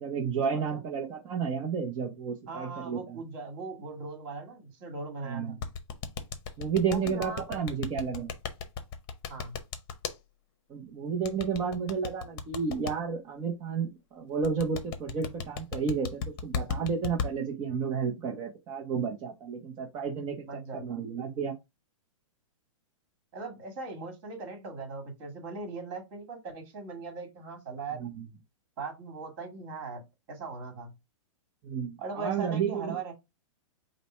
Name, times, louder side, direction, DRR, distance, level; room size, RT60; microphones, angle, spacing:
voice 1, 0.0-3.2 5.2-5.6 6.6-8.3 10.7-20.4 20.7-21.5 28.0-28.2 31.6-33.0, right 6 dB, 25° right, 0.7 m, -32 dB
voice 2, 2.5-5.6 6.9-7.6 9.3-9.6 20.5-21.0 23.3-28.0 28.8-30.0 30.3-30.9 32.0-33.1, right 3 dB, 40° right, 2.0 m, -39 dB
sound 1, 5.6-10.1 11.2-12.9 14.4-17.3, left 6 dB, 40° left, 0.8 m, -34 dB
5.1 x 2.1 x 4.4 m
hypercardioid pair, 145°, 17 cm